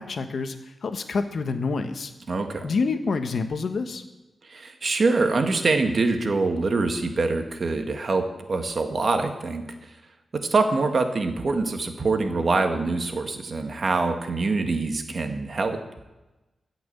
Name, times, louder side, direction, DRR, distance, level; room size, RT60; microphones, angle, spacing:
voice 1, 0.0-2.1 2.6-4.0, left 4 dB, 60° left, 7 dB, 1.3 m, -27 dB
voice 2, 2.3-2.7 4.5-9.6 10.5-15.8, right 3 dB, 50° right, 6 dB, 1.7 m, -24 dB
15.0 x 6.1 x 8.6 m, 1.1 s
wide cardioid pair, 95°, 0 cm